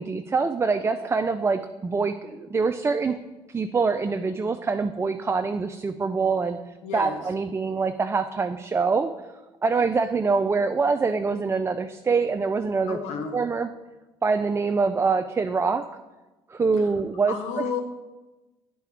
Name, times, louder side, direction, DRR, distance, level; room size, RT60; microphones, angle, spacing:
voice 1, 0.0-3.2 3.5-6.6 6.9-9.1 9.6-13.0 13.3-13.7 14.2-15.9 16.5-17.8, right 4 dB, 20° right, 8 dB, 0.3 m, -25 dB
voice 2, 6.8-7.2 12.9-13.4 17.3-17.8, left 6 dB, 75° left, 5 dB, 1.0 m, -31 dB
9.4 x 4.6 x 3.5 m, 1.1 s
supercardioid pair, 65°, 12 cm